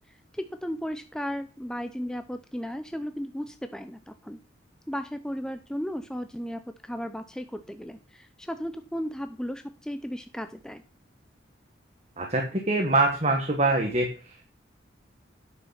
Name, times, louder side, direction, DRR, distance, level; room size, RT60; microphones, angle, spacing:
voice 1, 0.3-4.4 4.9-10.8, equal, 5° left, 8 dB, 0.5 m, -35 dB
voice 2, 12.2-14.4, right 2 dB, 35° right, 2 dB, 1.5 m, -24 dB
9.5 x 6.6 x 5.7 m, 0.36 s
head